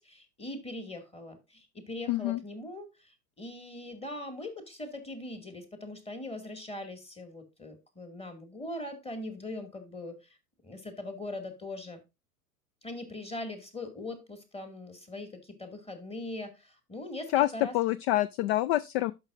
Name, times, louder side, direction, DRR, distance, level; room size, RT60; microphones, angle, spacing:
voice 1, 0.0-10.4 10.6-12.0 12.8-17.7, left 2 dB, 10° left, 2.1 m, -41 dB
voice 2, 2.1-2.4 17.3-19.1, left 15 dB, 45° left, 0.4 m, -27 dB
12.0 x 6.1 x 2.5 m
hypercardioid pair, 95°, 47 cm